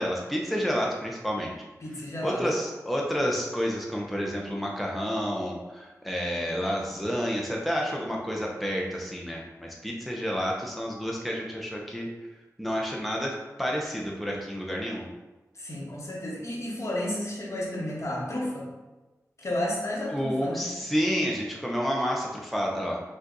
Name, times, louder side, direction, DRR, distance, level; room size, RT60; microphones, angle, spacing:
voice 1, 0.0-1.5 2.2-12.1 12.6-15.1 20.1-23.0, equal, ahead, -2 dB, 0.7 m, -29 dB
voice 2, 1.8-2.4 15.5-18.7 19.4-20.7, left 1 dB, 55° left, -3 dB, 1.2 m, -32 dB
5.3 x 2.4 x 3.9 m, 1.1 s
wide cardioid pair, 70°, 6 cm